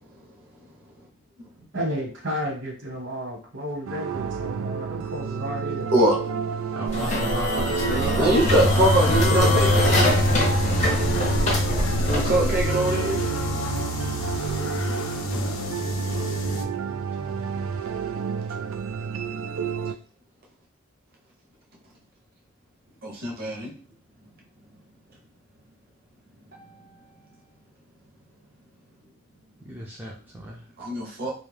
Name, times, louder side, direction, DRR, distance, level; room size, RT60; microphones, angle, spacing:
voice 1, 1.7-5.9 9.0-9.7, equal, 65° right, -1 dB, 1.1 m, -32 dB
sound 1, 3.9-19.9, right 6 dB, 85° right, 0.3 m, -30 dB
voice 2, 6.7-8.5 12.0-12.6 15.3-17.8 29.6-30.6, right 1 dB, 10° right, -3 dB, 0.4 m, -36 dB
sound 2, 6.9-12.7, left 1 dB, 35° left, 0.6 m, -25 dB
voice 3, 8.1-9.9 12.1-13.2 23.2-23.7 30.9-31.3, right 1 dB, 50° right, -1 dB, 0.7 m, -22 dB
sound 3, 8.5-16.6, left 2 dB, 80° left, 0.4 m, -26 dB
2.3 x 2.2 x 3.2 m, 0.39 s
head